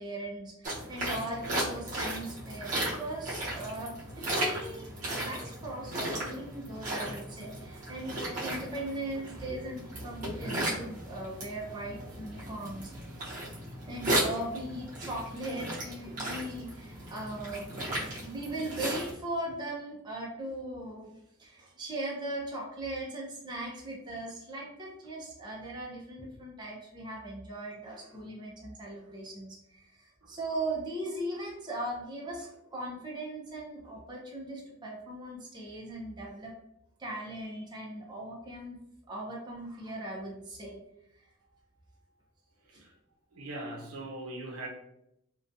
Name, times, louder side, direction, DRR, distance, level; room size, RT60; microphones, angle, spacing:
voice 1, 0.0-12.9 13.8-17.7 18.2-36.5 37.0-40.8 41.2-41.3 42.7-42.8, right 1 dB, 20° right, -4 dB, 0.5 m, -39 dB
sound 1, 0.6-19.1, right 1 dB, 35° right, 0.8 m, -36 dB
voice 2, 42.6-43.0 43.3-44.7, right 1 dB, 80° right, 0 dB, 0.6 m, -42 dB
2.5 x 2.2 x 2.6 m, 0.79 s
head